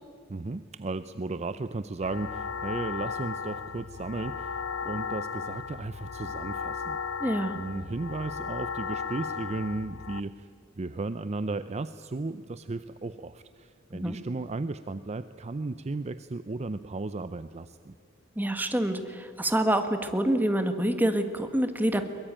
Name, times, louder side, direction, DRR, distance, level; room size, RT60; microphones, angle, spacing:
voice 1, 0.3-7.0 7.5-10.5 10.8-17.9, right 3 dB, 35° right, 13 dB, 0.5 m, -35 dB
sound 1, 2.0-10.2, left 5 dB, 75° left, 0.7 m, -35 dB
voice 2, 7.2-7.6 13.9-14.2 18.3-22.1, right 1 dB, 10° right, 7 dB, 1.5 m, -26 dB
22.5 x 21.5 x 8.9 m, 2.3 s
head